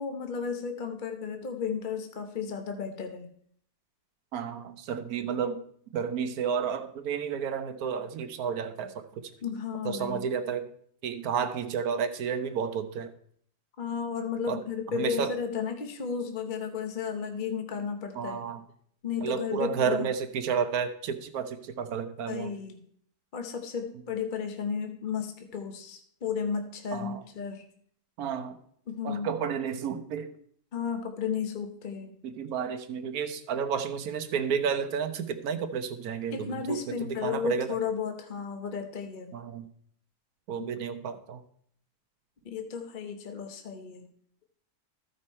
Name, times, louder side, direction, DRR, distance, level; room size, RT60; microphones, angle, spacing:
voice 1, 0.0-3.3 9.4-10.3 13.8-18.4 19.0-20.1 22.3-22.8 23.3-27.6 28.9-29.3 30.7-32.1 36.3-39.3 40.6-40.7 42.4-44.1, left 6 dB, 40° left, 5 dB, 0.9 m, -33 dB
voice 2, 4.3-5.6 5.9-9.2 9.8-10.7 11.0-13.1 14.5-14.6 14.9-15.4 18.1-18.6 19.2-22.5 26.9-27.2 28.2-28.6 29.0-30.3 32.2-37.8 39.3-39.7 40.5-41.4, right 7 dB, 70° right, 9 dB, 1.3 m, -31 dB
14.0 x 5.4 x 4.3 m, 0.63 s
omnidirectional pair, 1.7 m